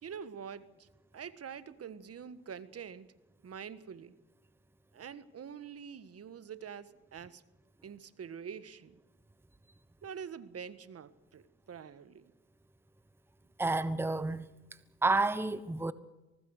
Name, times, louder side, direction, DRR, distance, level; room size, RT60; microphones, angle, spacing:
voice 1, 0.0-0.9 1.1-3.1 3.4-4.1 4.9-7.4 7.8-9.0 10.0-12.3, right 7 dB, 45° right, 1.6 m, -45 dB
voice 2, 13.6-14.4 15.0-15.9, right 3 dB, 5° right, 1.0 m, -30 dB
24.5 x 19.0 x 6.5 m
supercardioid pair, 70°, 32 cm